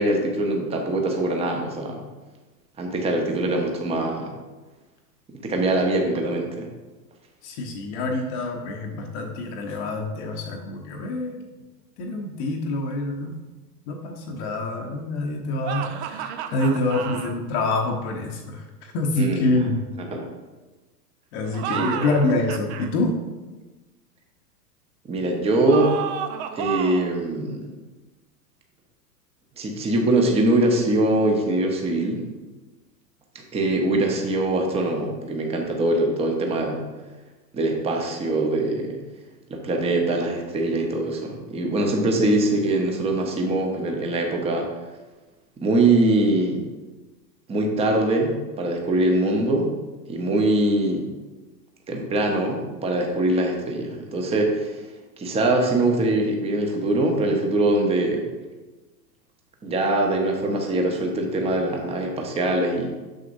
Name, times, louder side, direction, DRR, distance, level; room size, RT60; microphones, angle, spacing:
voice 1, 0.0-2.0 2.8-4.3 5.3-6.7 19.1-19.7 20.0-20.3 21.7-22.1 25.1-25.9 26.5-27.7 29.6-32.2 33.3-36.8 37.5-39.0 39.5-44.7 45.6-46.7 47.5-49.7 50.1-51.1 51.9-54.8 55.2-58.3 59.6-62.9, right 2 dB, 10° right, 2 dB, 0.8 m, -23 dB
voice 2, 7.4-11.4 12.0-13.4 13.9-19.8 21.3-23.2, left 2 dB, 40° left, 1 dB, 0.9 m, -26 dB
sound 1, 15.6-17.3 21.4-22.9 25.7-27.1, right 9 dB, 45° right, 0.5 m, -31 dB
6.9 x 6.4 x 2.6 m, 1.2 s
hypercardioid pair, 105°, 50 cm